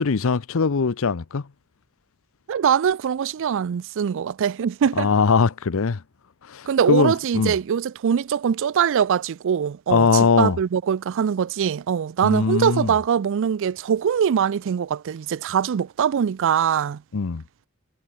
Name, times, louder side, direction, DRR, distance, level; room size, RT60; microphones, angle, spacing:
voice 1, 0.0-1.4 5.0-6.0 6.5-7.5 9.9-10.6 12.2-12.9 17.1-17.4, left 5 dB, 70° left, 0.7 m, -21 dB
voice 2, 2.5-5.1 6.7-17.0, right 8 dB, 65° right, 0.4 m, -22 dB
head